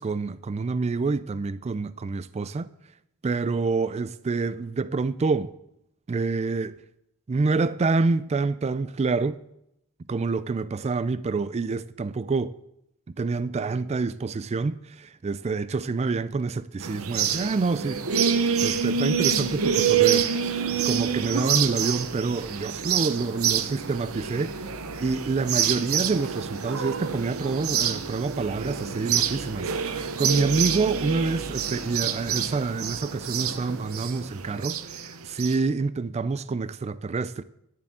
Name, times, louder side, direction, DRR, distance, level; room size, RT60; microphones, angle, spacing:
voice 1, 0.0-2.7 3.2-5.5 6.1-6.7 7.3-9.4 10.1-12.5 13.1-18.0 18.6-24.7 25.0-37.4, right 4 dB, 30° right, 0.3 m, -27 dB
sound 1, 16.8-35.6, right 7 dB, 70° right, 0.8 m, -27 dB
10.5 x 7.1 x 8.9 m
head